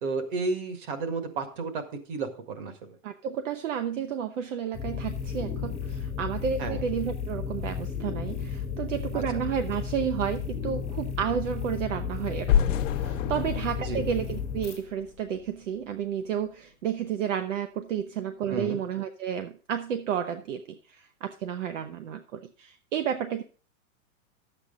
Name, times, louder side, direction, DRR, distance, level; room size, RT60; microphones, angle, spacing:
voice 1, 0.0-1.8 2.1-2.7 6.6-6.8 9.1-9.4 13.8-14.0 18.5-18.8, right 4 dB, 40° right, 6 dB, 1.8 m, -32 dB
voice 2, 3.0-23.4, right 8 dB, 60° right, 8 dB, 0.9 m, -31 dB
sound 1, 4.7-14.8, left 6 dB, 5° left, 0.3 m, -33 dB
sound 2, 12.5-15.5, left 10 dB, 60° left, 0.9 m, -28 dB
11.5 x 8.0 x 3.8 m, 0.39 s
supercardioid pair, 175°, 42 cm